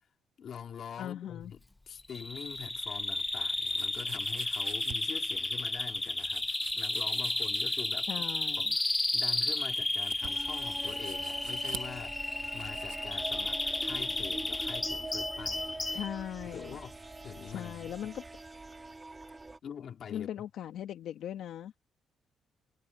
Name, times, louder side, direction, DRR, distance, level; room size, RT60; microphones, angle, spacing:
voice 1, 0.4-1.6 1.9-8.1 8.6-8.7 9.1-15.9 16.4-16.9 17.2-17.9 19.6-20.3, left 8 dB, 60° left, 2.4 m, -45 dB
voice 2, 1.0-1.5 8.0-8.8 15.9-16.8 17.5-18.2 20.1-21.8, left 10 dB, 75° left, 1.7 m, -39 dB
Bird vocalization bird call bird song, 2.1-16.1, left 2 dB, 15° left, 0.4 m, -33 dB
sound 1, 3.6-13.0, right 13 dB, 90° right, 1.0 m, -49 dB
sound 2, 10.2-19.6, right 2 dB, 20° right, 2.1 m, -44 dB
cardioid pair, 90°, 0 cm